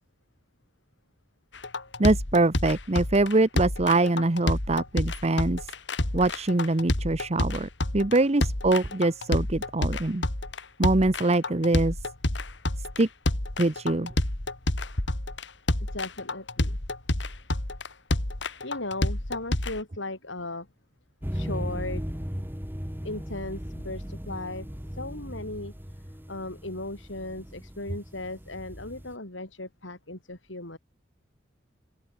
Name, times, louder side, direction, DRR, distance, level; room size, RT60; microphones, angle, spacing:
sound 1, 1.5-19.8, left 1 dB, 70° left, 2.6 m, -28 dB
voice 1, 2.0-5.7 6.1-10.2 10.8-12.0 13.0-13.1 13.6-14.1, right 2 dB, 35° right, 0.9 m, -24 dB
voice 2, 15.9-16.8 18.6-20.7 21.3-22.0 23.0-24.7 24.9-25.7 26.3-30.8, left 2 dB, 85° left, 5.6 m, -36 dB
sound 2, 21.2-29.1, equal, 10° right, 3.0 m, -37 dB
open air
head